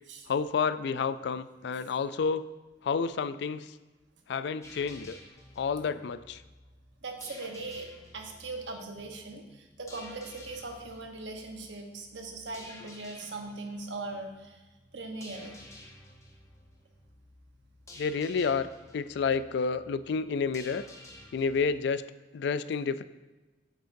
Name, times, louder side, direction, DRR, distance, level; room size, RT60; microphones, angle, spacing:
voice 1, 0.3-2.5 2.8-3.8 4.3-5.2 5.6-6.4 12.8-12.9 18.0-20.8 21.3-22.1 22.3-23.0, left 5 dB, 65° left, 14 dB, 0.3 m, -30 dB
sound 1, 4.6-21.7, left 1 dB, 20° left, 1.0 m, -52 dB
voice 2, 7.0-7.9 8.1-14.6 14.9-15.6, right 3 dB, 80° right, 3 dB, 1.1 m, -40 dB
8.3 x 8.0 x 2.7 m, 1.2 s
head